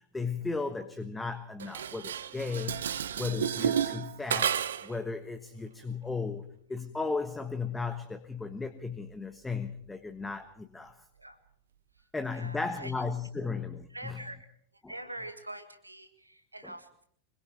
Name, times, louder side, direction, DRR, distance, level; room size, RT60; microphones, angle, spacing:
voice 1, 0.0-2.7 3.2-11.0 12.1-14.2, left 4 dB, 10° left, 9 dB, 1.3 m, -35 dB
Dishes pots and pans, 1.6-5.0, right 9 dB, 65° right, 1.0 m, -31 dB
voice 2, 12.3-12.9 13.4-13.5 13.9-14.5 14.7-17.0, right 1 dB, 85° right, 8 dB, 1.7 m, -44 dB
25.0 x 22.5 x 4.7 m, 0.66 s
figure-of-eight pair, 90°, 0 cm